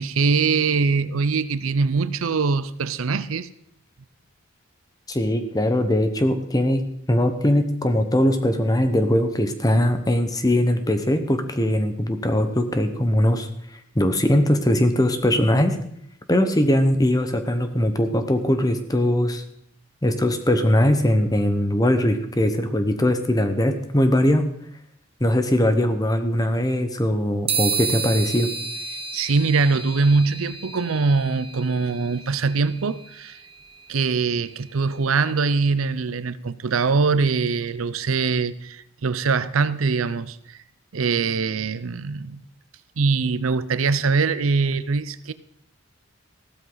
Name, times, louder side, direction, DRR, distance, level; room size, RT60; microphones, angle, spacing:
voice 1, 0.0-3.5 29.1-33.4 33.9-40.6 40.9-42.4 43.0-45.3, right 4 dB, 85° right, 0.6 m, -22 dB
voice 2, 5.1-6.8 7.1-13.5 13.9-15.8 16.3-19.4 20.0-24.5 25.2-28.5, left 1 dB, 20° left, 1.1 m, -20 dB
sound 1, 27.5-35.1, right 5 dB, 30° right, 1.2 m, -32 dB
15.0 x 12.5 x 4.0 m
head